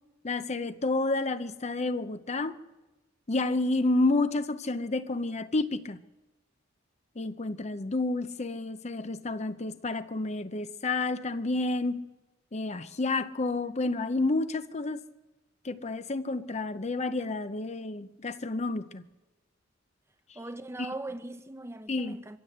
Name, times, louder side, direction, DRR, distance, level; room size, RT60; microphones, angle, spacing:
voice 1, 0.2-2.6 3.3-6.0 7.2-12.1 12.5-15.0 15.6-19.0 20.8-20.9 21.9-22.2, left 2 dB, 35° left, 0.7 m, -30 dB
voice 2, 20.3-22.4, right 2 dB, 15° right, 0.9 m, -40 dB
24.0 x 15.5 x 7.9 m
head